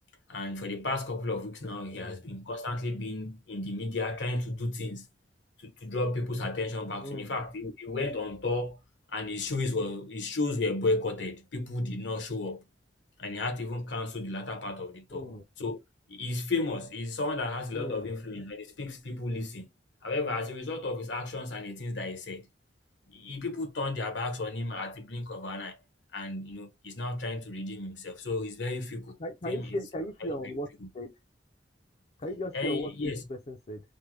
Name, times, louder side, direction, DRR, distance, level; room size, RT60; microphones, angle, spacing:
voice 1, 0.3-5.1 5.6-8.8 9.1-12.6 13.2-15.3 15.6-15.8 16.1-19.7 20.0-22.5 23.1-25.8 26.1-29.2 29.4-29.9 30.2-30.3 30.8-30.9 32.5-33.3, left 2 dB, 75° left, 1.0 m, -33 dB
voice 2, 7.0-7.3 15.1-15.4 17.7-18.1 29.2-30.7 30.9-31.1 32.2-33.8, left 1 dB, 35° left, 0.5 m, -36 dB
3.2 x 2.1 x 3.2 m
head